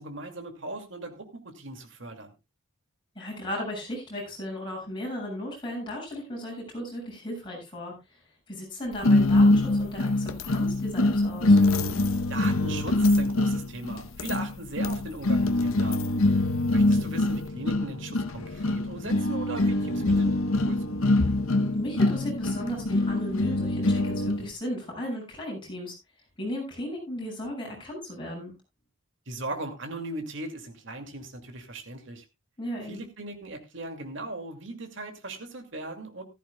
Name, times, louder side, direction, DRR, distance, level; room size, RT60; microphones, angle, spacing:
voice 1, 0.0-2.3 12.3-16.0 16.7-20.4 20.6-21.2 29.3-32.2 32.8-36.2, right 2 dB, 60° right, 6 dB, 2.3 m, -38 dB
voice 2, 3.2-7.9 8.5-11.6 21.6-26.0 26.4-28.5 32.6-33.1, left 1 dB, 20° left, -2 dB, 7.0 m, -35 dB
sound 1, 9.0-24.5, left 2 dB, 75° left, 0.9 m, -24 dB
15.0 x 13.5 x 2.3 m, 0.24 s
head